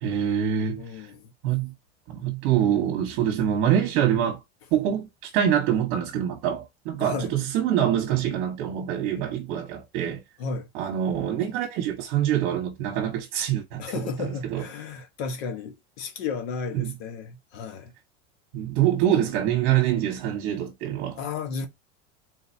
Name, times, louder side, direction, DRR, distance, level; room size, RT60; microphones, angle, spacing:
voice 1, 0.0-1.1 1.4-1.7 2.1-4.4 4.7-10.2 10.7-13.8 14.2-14.6 16.7-16.9 18.5-21.2, right 10 dB, 50° right, 1.3 m, -25 dB
voice 2, 0.8-1.3 7.0-7.3 10.4-10.7 13.8-17.9 21.1-21.7, left 5 dB, 60° left, 1.3 m, -33 dB
4.1 x 4.0 x 2.7 m
supercardioid pair, 175°, 35 cm